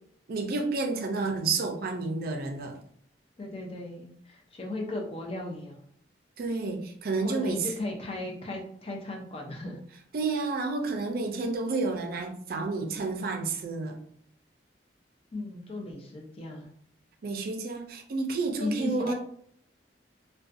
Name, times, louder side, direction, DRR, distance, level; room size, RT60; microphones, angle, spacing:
voice 1, 0.3-2.8 6.4-7.7 10.1-14.0 17.2-19.1, right 3 dB, 55° right, 0.4 m, -30 dB
voice 2, 3.4-5.8 7.2-9.8 15.3-16.7 18.6-19.1, left 2 dB, 30° left, 0.5 m, -36 dB
2.4 x 2.2 x 2.5 m
head